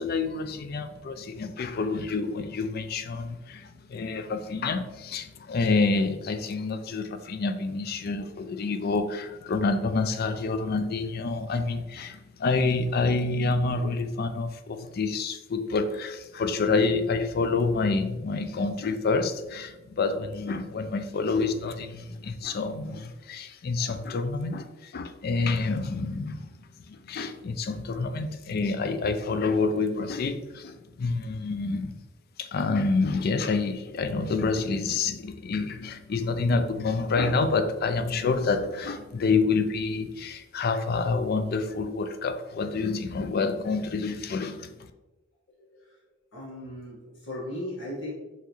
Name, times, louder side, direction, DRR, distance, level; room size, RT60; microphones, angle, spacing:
voice 1, 0.0-26.5 26.9-32.0 32.4-44.7, left 3 dB, 55° left, 9 dB, 0.4 m, -28 dB
voice 2, 45.5-46.0 46.3-48.1, left 1 dB, 90° left, -6 dB, 1.5 m, -37 dB
5.7 x 3.0 x 3.0 m, 1.1 s
head